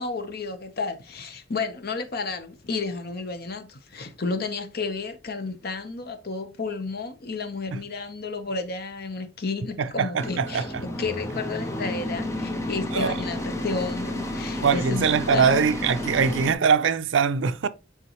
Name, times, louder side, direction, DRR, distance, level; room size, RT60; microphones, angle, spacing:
voice 1, 0.0-10.7 11.0-15.6, left 4 dB, 55° left, 0.9 m, -32 dB
voice 2, 9.8-10.8 12.9-13.1 14.6-17.7, right 6 dB, 70° right, 0.5 m, -22 dB
sound 1, 10.2-16.5, left 1 dB, 15° left, 0.7 m, -31 dB
9.1 x 3.7 x 3.0 m
head